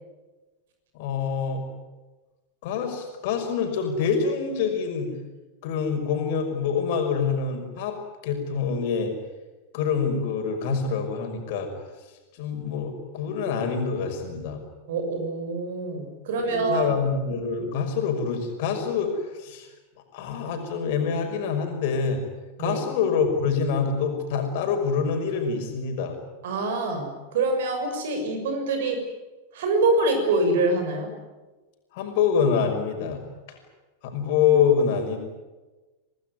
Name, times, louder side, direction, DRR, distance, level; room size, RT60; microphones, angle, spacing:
voice 1, 0.9-1.7 2.6-5.1 5.6-9.1 9.7-11.7 12.4-14.6 16.5-19.7 20.1-22.2 22.6-26.2 31.9-33.2 33.5-33.6 34.0-35.2, left 6 dB, 50° left, 4 dB, 5.8 m, -26 dB
voice 2, 14.9-16.9 22.6-22.8 26.4-29.0 29.5-31.1, right 3 dB, 55° right, 5 dB, 6.5 m, -25 dB
26.5 x 19.0 x 9.7 m, 1.2 s
figure-of-eight pair, 90°, 0 cm